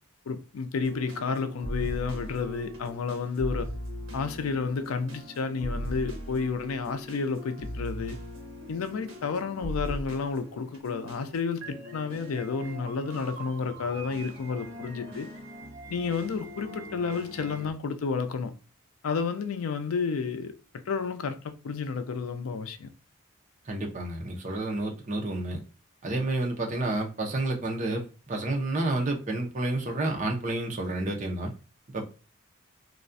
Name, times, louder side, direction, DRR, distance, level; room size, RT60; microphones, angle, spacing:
voice 1, 0.3-3.7 4.1-8.2 8.7-15.3 15.9-18.5 19.0-22.9, left 5 dB, 90° left, 0.4 m, -31 dB
sound 1, 0.8-17.7, equal, 70° right, 0.7 m, -40 dB
voice 2, 23.7-25.6 26.0-31.5 31.9-32.0, right 2 dB, 35° right, 0.5 m, -30 dB
2.4 x 2.1 x 2.4 m
head